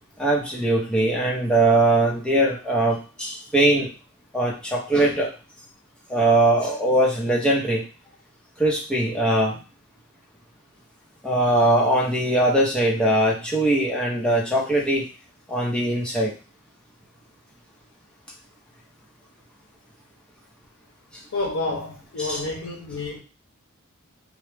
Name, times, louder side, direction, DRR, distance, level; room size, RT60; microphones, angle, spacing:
voice 1, 0.2-3.9 4.3-5.3 6.1-7.8 8.6-9.6 11.2-15.0 15.5-16.3 22.2-22.4, right 1 dB, 5° left, -4 dB, 0.6 m, -21 dB
voice 2, 21.3-23.2, left 2 dB, 85° left, 0 dB, 0.6 m, -29 dB
2.2 x 2.0 x 3.1 m, 0.34 s
head